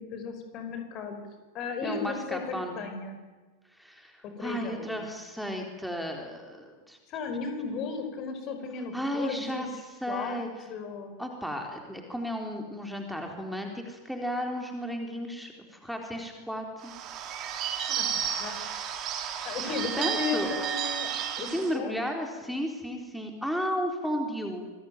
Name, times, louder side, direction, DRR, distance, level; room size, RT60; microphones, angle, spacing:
voice 1, 0.1-1.2 1.5-2.4 2.7-3.2 4.2-5.0 7.1-9.6 10.1-10.4 10.7-11.1 17.8-18.6 19.4-21.9, left 5 dB, 35° left, 7 dB, 5.1 m, -35 dB
voice 2, 1.8-2.7 3.8-7.0 8.9-9.7 10.0-10.5 11.2-16.9 19.6-20.5 21.5-24.7, equal, ahead, 2 dB, 4.0 m, -34 dB
Bird / Bell, 16.8-21.8, right 8 dB, 35° right, 3.5 m, -32 dB
27.0 x 21.5 x 9.3 m, 1.3 s
figure-of-eight pair, 90°, 0 cm